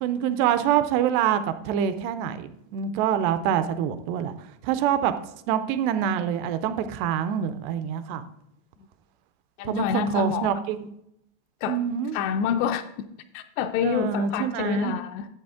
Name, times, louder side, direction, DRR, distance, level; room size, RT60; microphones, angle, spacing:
voice 1, 0.0-4.4 4.6-5.1 5.5-8.2 9.7-10.9 11.7-12.2 13.8-15.0, right 9 dB, 85° right, 11 dB, 2.6 m, -25 dB
voice 2, 9.6-10.5 11.6-11.8 12.1-12.8 13.3-15.3, left 8 dB, 85° left, 7 dB, 2.6 m, -27 dB
11.5 x 7.7 x 3.5 m, 0.77 s
omnidirectional pair, 5.1 m